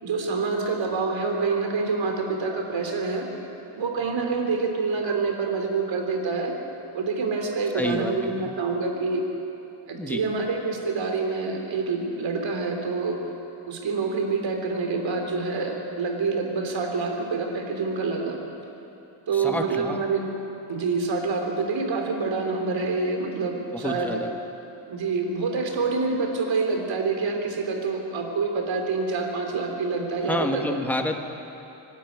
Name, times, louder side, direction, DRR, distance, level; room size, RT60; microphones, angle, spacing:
voice 1, 0.0-3.3 3.8-6.5 6.9-9.2 9.9-13.2 13.7-18.4 19.3-20.2 20.7-24.2 24.9-30.8, right 4 dB, 65° right, 3 dB, 3.5 m, -27 dB
voice 2, 7.7-8.5 10.0-10.2 19.3-20.0 23.7-24.3 30.2-31.3, left 1 dB, 5° left, 4 dB, 1.5 m, -29 dB
24.0 x 12.0 x 9.4 m, 2.9 s
cardioid pair, 105°, 48 cm